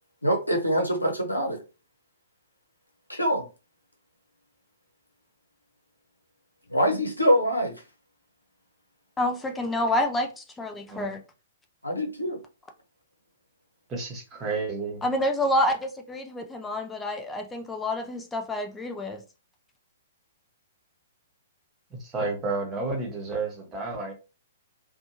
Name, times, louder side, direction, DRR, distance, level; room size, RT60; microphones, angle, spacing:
voice 1, 0.2-1.6 3.1-3.5 6.7-7.7 11.8-12.4, equal, 90° left, 0.8 m, -24 dB
voice 2, 9.2-11.2 15.0-19.2, left 1 dB, 10° left, 0.4 m, -28 dB
voice 3, 13.9-15.0 21.9-24.1, right 3 dB, 20° right, 0.9 m, -31 dB
2.6 x 2.2 x 2.8 m
figure-of-eight pair, 115°, 0 cm